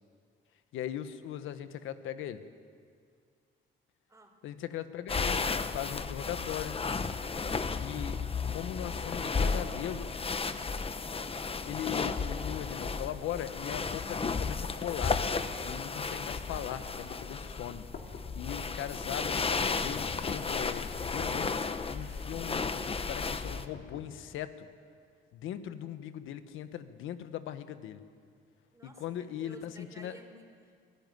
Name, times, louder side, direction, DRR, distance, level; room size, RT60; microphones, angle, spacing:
voice 1, 0.7-2.4 4.4-5.4 5.7-6.8 7.8-8.2 8.5-10.1 11.6-15.2 15.6-17.9 18.3-21.5 21.9-24.7 25.3-28.0 28.8-30.1, left 11 dB, 90° left, 11 dB, 1.2 m, -39 dB
sound 1, 5.1-23.7, left 4 dB, 30° left, 1.1 m, -33 dB
sound 2, 16.3-17.0 17.7-18.4 19.2-19.9 20.8-21.5 22.2-22.8 23.5-24.4, left 5 dB, 55° left, 3.0 m, -50 dB
voice 2, 28.7-30.9, right 1 dB, 15° right, 2 dB, 4.6 m, -53 dB
24.5 x 16.0 x 9.4 m, 2.1 s
cardioid pair, 90°, 20 cm